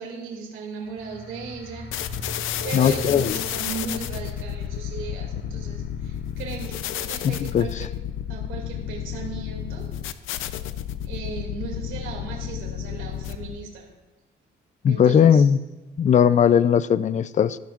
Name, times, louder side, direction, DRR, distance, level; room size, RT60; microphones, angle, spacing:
voice 1, 0.0-1.9 2.6-7.9 8.3-9.9 11.0-13.9 14.8-15.5, right 5 dB, 90° right, 0 dB, 2.5 m, -36 dB
sound 1, 0.8-12.3, equal, 60° left, 3.2 m, -42 dB
sound 2, 1.9-13.7, left 10 dB, 85° left, 0.6 m, -32 dB
voice 2, 2.7-3.4 7.2-7.9 14.8-15.6 16.0-17.6, left 8 dB, 40° left, 16 dB, 0.4 m, -18 dB
14.0 x 14.0 x 2.5 m, 1.1 s
cardioid pair, 90°, 20 cm